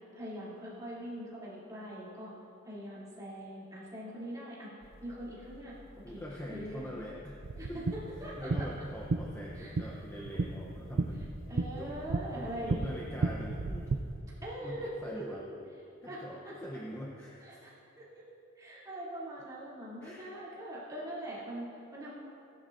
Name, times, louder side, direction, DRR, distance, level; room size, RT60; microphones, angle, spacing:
voice 1, 0.1-2.3 2.6-4.7 5.0-5.7 6.1-6.9 7.5-7.7 8.2-8.5 9.6-9.7 11.1-12.9 14.4-15.6 16.0-16.2 16.4-16.5 17.4-17.7 18.0-18.1 18.5-22.1, right 1 dB, 15° right, -9 dB, 2.8 m, -42 dB
sound 1, 4.8-14.4, left 1 dB, 75° left, 1.5 m, -55 dB
voice 2, 6.0-7.4 7.7-7.8 8.4-11.3 11.7-11.9 12.3-13.9 14.6-15.5 16.0-17.7 20.0-20.3, equal, 10° left, -4 dB, 0.7 m, -43 dB
sound 2, 7.4-14.0, right 3 dB, 75° right, 0.5 m, -34 dB
17.5 x 10.5 x 2.6 m, 2.7 s
head